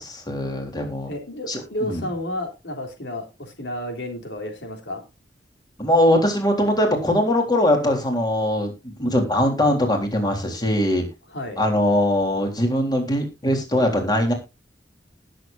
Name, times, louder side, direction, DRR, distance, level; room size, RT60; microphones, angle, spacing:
voice 1, 0.0-1.1 1.5-1.6 1.9-2.0 5.8-11.0 11.6-14.3, left 1 dB, 25° left, 3 dB, 3.7 m, -21 dB
voice 2, 1.1-5.0 11.3-11.6, left 1 dB, 80° left, 4 dB, 3.4 m, -31 dB
19.5 x 7.7 x 2.6 m, 0.26 s
head